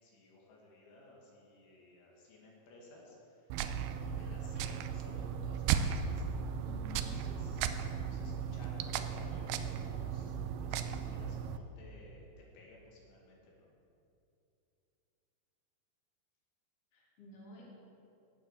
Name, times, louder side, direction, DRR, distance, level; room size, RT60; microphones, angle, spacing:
voice 1, 0.0-3.6 4.0-6.3 7.0-10.3 10.6-12.3 12.5-13.7, left 2 dB, 75° left, -3 dB, 4.5 m, -57 dB
sound 1, 3.5-11.6, right 7 dB, 85° right, 2.6 m, -36 dB
voice 2, 6.7-7.2 16.9-17.6, left 4 dB, 30° left, -5 dB, 3.8 m, -51 dB
18.0 x 8.2 x 7.2 m, 2.7 s
omnidirectional pair, 5.5 m